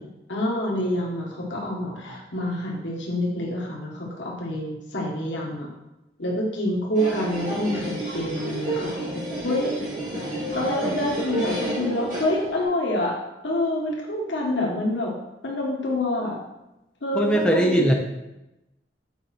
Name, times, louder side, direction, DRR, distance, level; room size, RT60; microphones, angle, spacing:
voice 1, 0.0-5.7 6.2-8.9 9.4-9.7 10.5-13.1 13.4-15.1 15.4-16.4 17.0-17.9, left 1 dB, 85° left, -3 dB, 1.5 m, -27 dB
sound 1, 7.0-12.6, right 1 dB, 45° right, 2.6 m, -30 dB
voice 2, 17.1-17.9, right 1 dB, 5° left, 0 dB, 0.8 m, -19 dB
8.0 x 4.9 x 4.4 m, 0.95 s
head